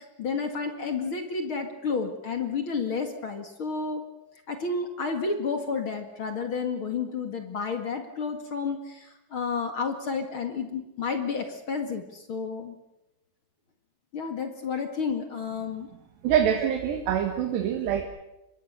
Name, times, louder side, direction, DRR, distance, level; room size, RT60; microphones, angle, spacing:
voice 1, 0.0-4.0 4.5-12.8 14.1-15.9, left 5 dB, 40° left, 6 dB, 1.9 m, -31 dB
voice 2, 16.2-18.0, right 9 dB, 75° right, 5 dB, 3.9 m, -25 dB
26.0 x 22.0 x 6.8 m, 0.93 s
omnidirectional pair, 4.9 m